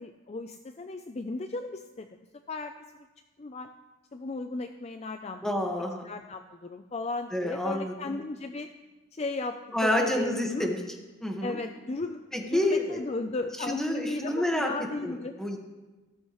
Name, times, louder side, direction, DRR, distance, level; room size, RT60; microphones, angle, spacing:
voice 1, 0.0-2.1 2.5-2.7 3.4-3.7 4.1-5.4 6.0-8.7 9.1-10.7 11.4-15.3, left 3 dB, 30° left, 7 dB, 0.4 m, -35 dB
voice 2, 5.4-6.0 7.3-8.2 9.7-10.8 11.2-11.6 12.3-13.0 13.7-14.7 15.0-15.6, left 1 dB, 5° left, 1 dB, 1.5 m, -28 dB
15.5 x 13.5 x 3.1 m, 1.2 s
head